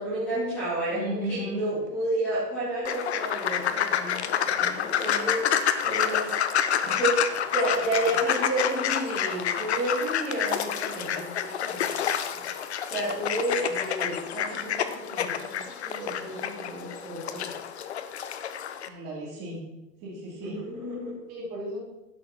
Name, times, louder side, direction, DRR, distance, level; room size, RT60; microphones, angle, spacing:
voice 1, 0.0-11.8 12.3-17.6 20.4-21.1, right 1 dB, 5° left, -10 dB, 0.6 m, -31 dB
voice 2, 0.9-1.6 18.8-19.6 20.0-20.6 21.3-21.8, right 1 dB, 20° right, -4 dB, 3.0 m, -35 dB
sound 1, 2.8-18.9, left 8 dB, 45° left, 0.6 m, -28 dB
11.0 x 6.9 x 5.8 m, 0.94 s
hypercardioid pair, 175°, 48 cm